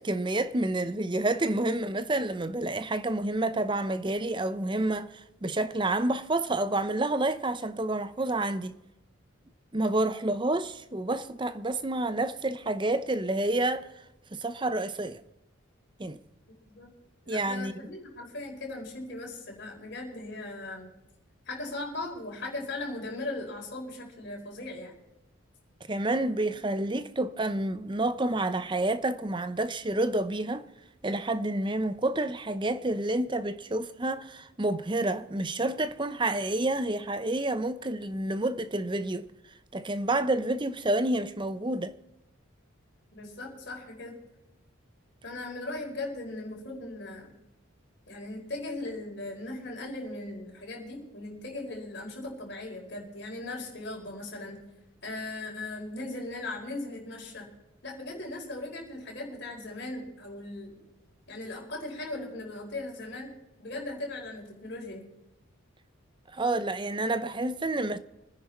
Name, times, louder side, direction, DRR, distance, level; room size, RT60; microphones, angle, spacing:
voice 1, 0.0-8.8 9.7-13.9 14.3-15.2 16.0-16.2 17.3-17.7 25.9-30.7 31.0-39.3 39.7-41.9 66.3-68.0, right 2 dB, 25° right, 0.6 m, -29 dB
voice 2, 17.2-20.9 21.5-24.9 43.1-44.2 45.2-47.4 48.1-54.6 55.0-57.5 57.8-60.8 61.3-65.0, left 2 dB, 55° left, 5.1 m, -38 dB
25.0 x 10.5 x 4.3 m
head